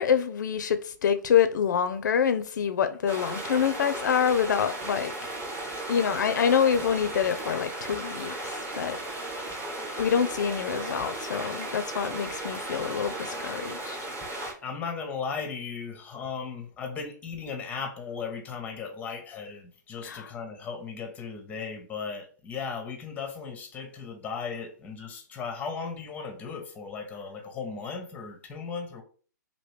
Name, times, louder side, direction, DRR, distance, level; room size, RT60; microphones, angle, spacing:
voice 1, 0.0-5.1 5.9-9.0 10.0-14.0 20.1-20.2, left 7 dB, 70° left, 0.4 m, -26 dB
sound 1, 3.1-14.5, right 1 dB, 20° right, 1.0 m, -35 dB
voice 2, 14.6-29.0, left 5 dB, 15° left, 0.6 m, -36 dB
2.9 x 2.6 x 3.1 m
hypercardioid pair, 130°, 10 cm